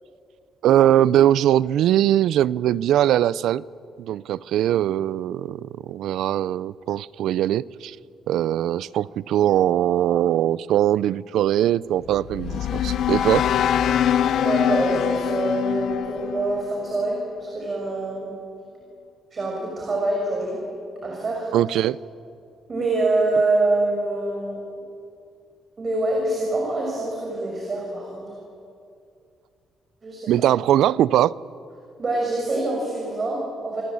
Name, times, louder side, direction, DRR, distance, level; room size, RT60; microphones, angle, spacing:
voice 1, 0.6-3.6 4.0-8.0 8.3-13.5 21.5-22.0 30.3-31.3, right 12 dB, 80° right, 21 dB, 0.5 m, -21 dB
sound 1, 12.0-17.3, left 9 dB, 70° left, 0.9 m, -24 dB
voice 2, 14.4-18.3 19.3-20.6 21.0-21.5 22.7-24.6 25.8-28.3 30.0-30.3 32.0-33.8, right 2 dB, 40° right, 0 dB, 6.4 m, -25 dB
28.0 x 20.0 x 8.7 m, 2.5 s
cardioid pair, 90°, 0 cm